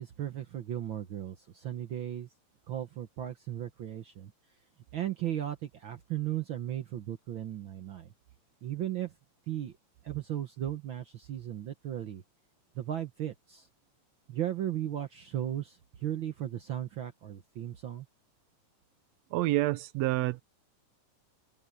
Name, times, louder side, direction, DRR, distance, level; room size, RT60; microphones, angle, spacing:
voice 1, 0.0-2.3 2.7-4.3 4.9-8.1 8.6-9.2 9.5-9.7 10.0-12.2 12.7-13.7 14.3-18.1, right 11 dB, 65° right, 1.3 m, -36 dB
voice 2, 19.3-20.4, right 17 dB, 80° right, 1.6 m, -28 dB
omnidirectional pair, 3.4 m